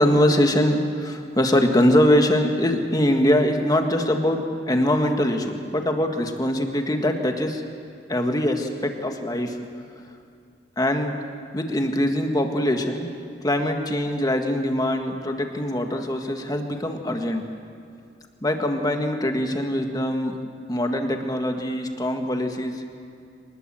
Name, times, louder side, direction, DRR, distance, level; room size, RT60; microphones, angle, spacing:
voice 1, 0.0-7.6 8.1-9.6 10.8-11.1 11.5-13.1 13.4-17.4 18.4-20.4 20.7-22.7, left 1 dB, 20° left, 4 dB, 1.8 m, -22 dB
25.0 x 20.0 x 7.7 m, 2.5 s
head